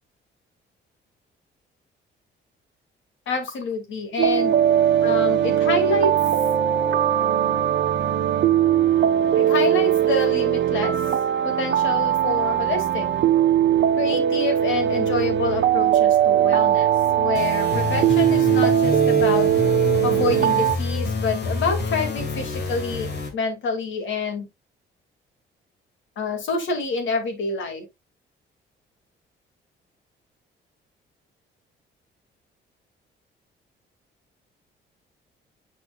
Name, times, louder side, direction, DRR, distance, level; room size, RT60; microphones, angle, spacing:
voice 1, 3.3-4.6 5.0-6.1 9.3-11.0 11.4-13.1 14.0-19.5 20.0-24.5 26.2-27.9, left 3 dB, 75° left, 2.3 m, -27 dB
sound 1, 4.2-20.8, right 10 dB, 65° right, 1.0 m, -20 dB
sound 2, 17.3-23.3, left 4 dB, 55° left, 2.3 m, -27 dB
9.3 x 4.5 x 2.3 m
cardioid pair, 90°, 20 cm